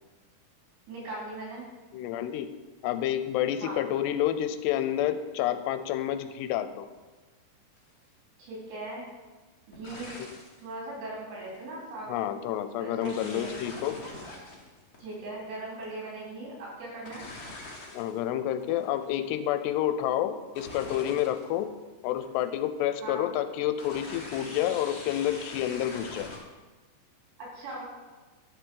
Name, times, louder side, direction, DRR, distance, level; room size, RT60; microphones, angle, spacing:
voice 1, 0.9-1.7 3.6-3.8 8.4-9.1 9.7-10.1 10.6-12.4 12.8-13.5 15.0-17.3 23.0-23.3 27.4-27.8, right 2 dB, 85° right, -4 dB, 5.9 m, -39 dB
voice 2, 1.9-2.5 2.8-6.9 12.1-14.0 17.9-21.7 22.0-26.3, left 11 dB, 85° left, 10 dB, 2.8 m, -29 dB
sound 1, 7.8-8.0 9.7-10.6 11.3-11.6 13.0-16.0 17.0-18.2 18.5-19.1 20.5-21.6 22.0-22.6 23.8-26.4, left 2 dB, 35° left, 1.6 m, -43 dB
10.5 x 6.2 x 6.3 m, 1.2 s
omnidirectional pair, 4.8 m